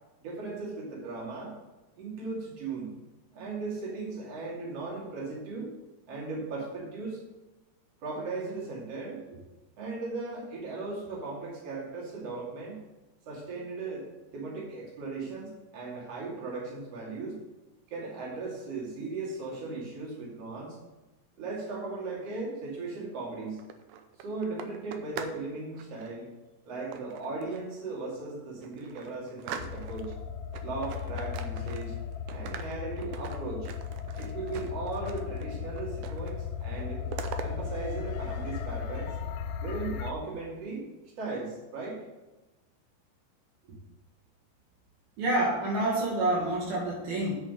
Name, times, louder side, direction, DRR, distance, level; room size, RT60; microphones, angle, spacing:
voice 1, 0.2-1.5 2.0-2.9 3.3-5.7 6.1-7.2 8.0-9.4 9.8-12.8 13.3-14.1 14.3-17.4 17.9-20.8 21.4-23.6 24.2-26.3 26.6-30.1 30.6-31.9 32.3-33.7 34.2-37.0 37.4-39.2 39.6-40.9 41.2-42.0, right 3 dB, 45° right, -4 dB, 3.3 m, -37 dB
sound 1, 23.5-25.4 25.7-26.1 26.9-27.7 28.2-28.3 28.6-30.2 30.5-32.0 32.3-35.5 35.7-36.4 36.6-37.5, right 8 dB, 90° right, 1.8 m, -42 dB
sound 2, 29.6-40.1, left 7 dB, 80° left, 2.3 m, -36 dB
voice 2, 45.2-47.3, right 1 dB, 70° right, -3 dB, 3.3 m, -27 dB
8.8 x 6.4 x 5.1 m, 1.1 s
omnidirectional pair, 4.5 m